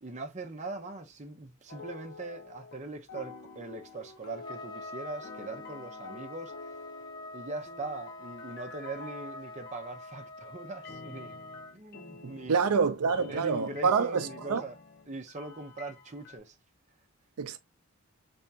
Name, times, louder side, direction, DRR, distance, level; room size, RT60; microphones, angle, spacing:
voice 1, 0.0-6.7 7.3-11.4 11.7-12.8 13.2-14.8 15.1-16.5, right 2 dB, 30° right, 0.7 m, -41 dB
sound 1, 1.7-2.8 3.1-10.3 10.8-16.4, left 3 dB, 50° left, 0.8 m, -49 dB
Trumpet, 4.4-11.7, left 2 dB, 20° left, 0.5 m, -45 dB
voice 2, 12.5-14.6 17.4-17.6, right 5 dB, 85° right, 0.5 m, -27 dB
3.5 x 3.4 x 2.7 m
head